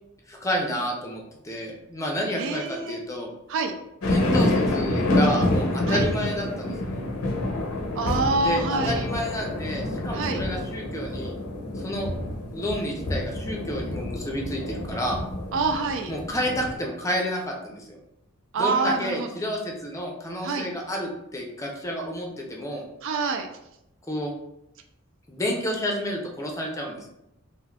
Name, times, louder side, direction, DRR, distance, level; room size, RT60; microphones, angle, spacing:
voice 1, 0.3-3.3 4.1-7.1 8.4-11.3 11.8-12.1 12.5-15.2 16.1-18.0 18.6-22.8 24.1-24.3 25.3-27.1, equal, 15° left, 0 dB, 0.5 m, -30 dB
voice 2, 2.4-3.0 3.5-3.7 5.9-6.0 8.0-9.1 10.1-10.4 15.5-16.1 18.5-19.3 20.4-20.7 23.0-23.5, right 3 dB, 65° right, 5 dB, 0.3 m, -26 dB
sound 1, 4.0-16.8, left 1 dB, 90° left, 0.6 m, -27 dB
3.6 x 2.5 x 2.3 m, 0.83 s
head